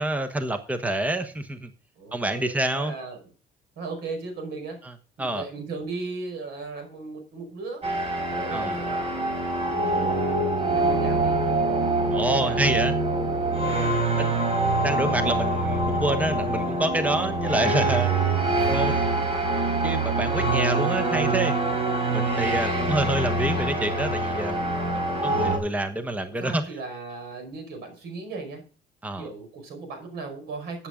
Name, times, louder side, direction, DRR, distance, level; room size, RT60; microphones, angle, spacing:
voice 1, 0.0-1.7 2.1-2.9 5.2-5.4 8.5-8.8 12.1-12.9 13.7-14.3 14.8-18.1 18.7-19.0 19.8-21.5 22.1-24.6 25.2-26.6 29.0-29.3, right 1 dB, 10° right, 8 dB, 1.2 m, -27 dB
voice 2, 2.0-3.2 3.8-4.8 5.2-7.8 8.3-9.0 9.8-11.4 12.3-12.8 13.5-14.1 18.5-19.1 22.5-23.7 25.2-25.6 26.4-28.6 29.2-30.9, right 3 dB, 80° right, 5 dB, 5.0 m, -37 dB
sound 1, 7.8-25.6, right 2 dB, 35° right, 4.0 m, -25 dB
13.5 x 8.9 x 3.8 m, 0.38 s
cardioid pair, 110°, 17 cm